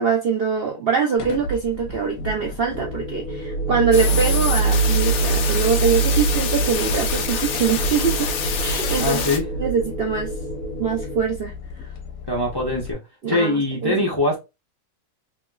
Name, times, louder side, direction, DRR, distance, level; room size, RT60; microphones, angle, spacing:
voice 1, 0.0-9.2 9.6-10.3 10.8-11.5 13.2-14.0, right 6 dB, 80° right, 0.5 m, -23 dB
car reverse, 1.2-12.9, right 3 dB, 60° left, 1.2 m, -26 dB
sound 1, 2.7-11.2, equal, 25° right, 1.8 m, -34 dB
sound 2, 3.9-9.4, left 7 dB, 85° left, 0.6 m, -27 dB
voice 2, 9.0-9.5 12.3-13.0 13.3-14.4, left 2 dB, 20° left, 0.8 m, -22 dB
3.3 x 2.9 x 2.3 m
omnidirectional pair, 1.9 m